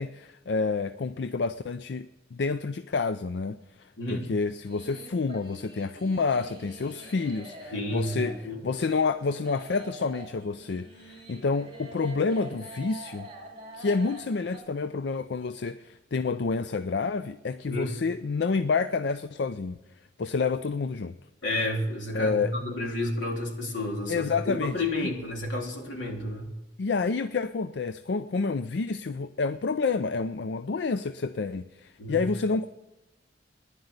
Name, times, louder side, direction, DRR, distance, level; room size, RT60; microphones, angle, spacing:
voice 1, 0.0-2.1 2.3-3.6 4.1-8.4 8.6-13.3 13.7-19.8 20.2-21.1 22.1-22.5 24.1-24.7 26.8-32.7, left 4 dB, 65° left, 11 dB, 0.5 m, -29 dB
sound 1, 4.6-14.6, right 1 dB, 30° right, 3.7 m, -46 dB
voice 2, 7.7-8.6 17.7-17.9 21.4-26.5 32.0-32.2, left 1 dB, 90° left, 0 dB, 3.4 m, -31 dB
15.5 x 11.0 x 8.0 m, 1.0 s
head